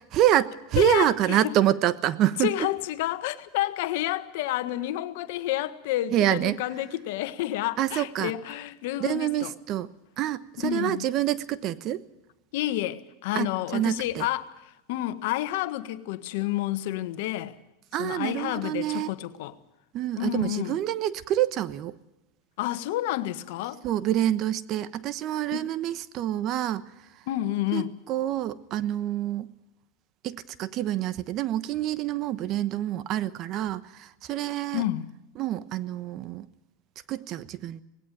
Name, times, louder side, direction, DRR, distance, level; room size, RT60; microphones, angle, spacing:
voice 1, 0.0-2.5 6.1-6.6 7.8-8.3 9.0-9.9 10.2-12.0 13.3-13.5 13.7-14.3 17.9-19.1 19.9-21.9 23.8-26.9 27.7-29.5 30.2-34.8 35.4-36.5 37.1-37.8, right 12 dB, 45° right, 1.0 m, -27 dB
voice 2, 0.8-1.5 2.4-9.5 10.6-11.0 12.5-14.5 14.9-17.6 18.0-19.5 20.2-20.8 22.6-23.8 25.5-25.7 27.3-27.9 34.7-35.1, left 14 dB, 70° left, 1.4 m, -30 dB
19.5 x 17.0 x 9.2 m
supercardioid pair, 120°, 0 cm